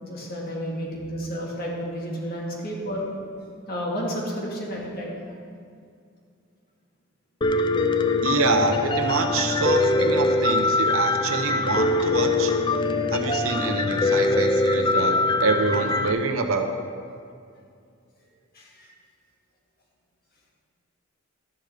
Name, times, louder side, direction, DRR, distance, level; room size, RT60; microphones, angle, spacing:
voice 1, 0.0-3.1 3.7-5.2 18.5-18.9, equal, 45° left, -3 dB, 1.9 m, -31 dB
Piano, 7.4-16.1, left 2 dB, 20° left, 0.4 m, -23 dB
voice 2, 8.2-12.5 13.1-16.7, right 4 dB, 80° right, 5 dB, 0.9 m, -26 dB
12.5 x 10.5 x 3.4 m, 2.3 s
head